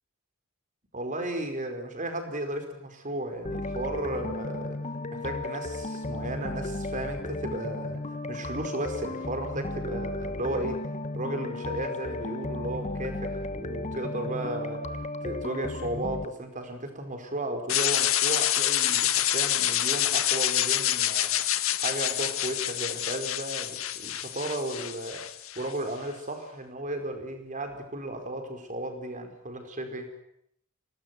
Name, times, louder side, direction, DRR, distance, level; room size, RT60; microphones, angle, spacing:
voice 1, 0.9-4.8 5.1-8.0 8.3-10.8 11.1-14.9 15.2-21.4 21.8-25.2 25.5-30.1, right 1 dB, 35° right, 6 dB, 5.0 m, -34 dB
sound 1, 3.4-16.3, left 2 dB, 30° left, 1.1 m, -34 dB
sound 2, 17.7-25.7, left 12 dB, 65° left, 1.8 m, -27 dB
25.5 x 19.0 x 9.7 m, 0.74 s
head